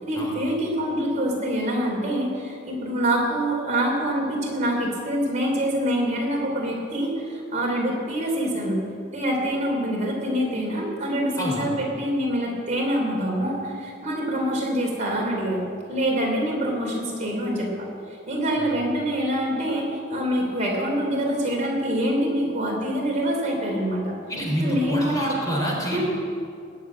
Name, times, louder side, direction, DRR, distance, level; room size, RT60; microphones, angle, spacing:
voice 1, 0.0-8.8 9.1-15.6 15.9-19.8 20.1-24.1 24.6-25.1 25.9-26.0, equal, 35° right, -2 dB, 3.3 m, -25 dB
voice 2, 24.3-26.0, equal, 20° left, -2 dB, 3.6 m, -27 dB
21.0 x 7.0 x 9.0 m, 2.4 s
head